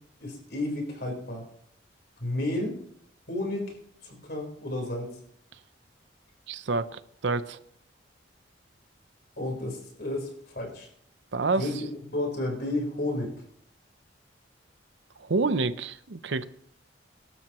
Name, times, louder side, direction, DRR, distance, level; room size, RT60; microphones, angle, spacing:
voice 1, 0.2-1.5 2.2-2.8 3.3-3.8 4.0-5.2 9.4-10.9 11.6-13.4, left 1 dB, 55° left, 1 dB, 4.3 m, -32 dB
voice 2, 6.5-7.6 11.3-11.7 15.2-16.4, right 3 dB, 70° right, 13 dB, 0.7 m, -28 dB
22.5 x 12.0 x 3.1 m, 0.67 s
head